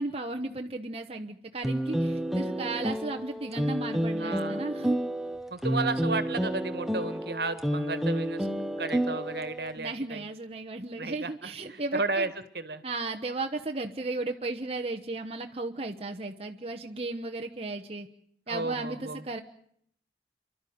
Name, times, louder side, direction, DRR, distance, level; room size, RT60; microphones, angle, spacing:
voice 1, 0.0-5.0 9.8-12.2 12.8-18.1 18.5-19.4, right 2 dB, 35° right, 3 dB, 1.1 m, -35 dB
sound 1, 1.6-9.7, equal, ahead, 0.9 m, -30 dB
voice 2, 4.2-4.6 5.5-8.5 8.8-10.2 11.0-12.3 12.5-12.8 18.5-19.2, right 3 dB, 65° right, 12 dB, 1.8 m, -33 dB
29.5 x 12.0 x 9.4 m, 0.69 s
head